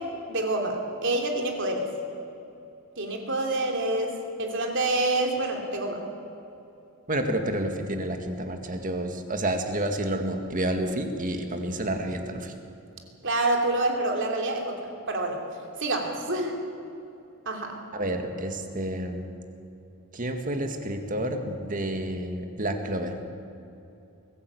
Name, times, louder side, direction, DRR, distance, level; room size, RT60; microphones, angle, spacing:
voice 1, 0.3-1.9 3.0-6.0 13.2-14.7 15.1-15.4 15.8-16.6 17.5-17.8, right 2 dB, 60° right, 3 dB, 3.0 m, -27 dB
voice 2, 7.1-12.5 17.9-19.3 20.1-23.1, right 1 dB, 40° right, 5 dB, 1.9 m, -29 dB
22.5 x 15.0 x 8.4 m, 2.8 s
head